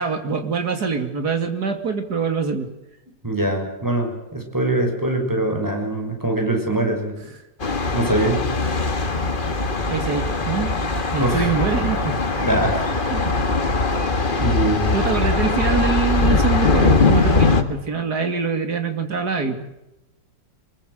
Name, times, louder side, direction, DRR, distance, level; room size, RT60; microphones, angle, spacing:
voice 1, 0.0-2.7 7.3-7.4 9.9-10.8 11.1-12.2 13.1-13.3 14.9-19.7, right 5 dB, 60° right, 6 dB, 3.2 m, -24 dB
voice 2, 3.2-7.1 7.9-8.7 11.2-11.5 12.4-12.8 14.4-15.0, right 1 dB, 10° right, 3 dB, 6.2 m, -23 dB
Thunder, 7.6-17.6, left 3 dB, 30° left, 1.8 m, -21 dB
24.5 x 22.0 x 8.0 m, 0.89 s
omnidirectional pair, 1.9 m